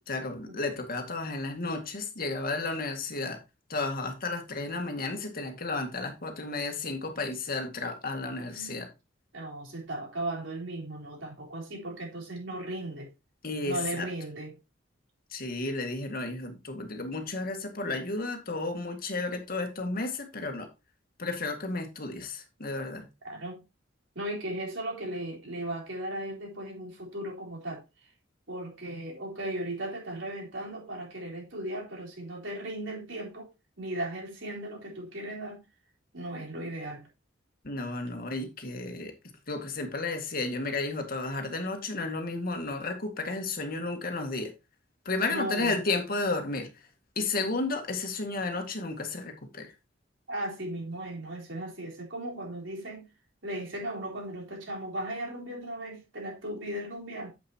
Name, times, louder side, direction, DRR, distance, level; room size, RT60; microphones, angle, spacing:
voice 1, 0.1-3.4 3.7-8.9 13.4-14.1 15.3-20.7 21.2-23.0 37.6-39.1 39.5-44.5 45.1-46.7 47.2-49.7, left 3 dB, 50° left, 2.0 m, -32 dB
voice 2, 8.5-8.9 9.3-13.1 13.6-14.6 23.2-23.6 24.2-27.8 28.5-33.5 33.8-35.6 36.1-37.1 45.3-45.8 50.3-53.1 53.4-57.3, right 1 dB, 85° right, 4.0 m, -36 dB
9.1 x 8.0 x 2.9 m
head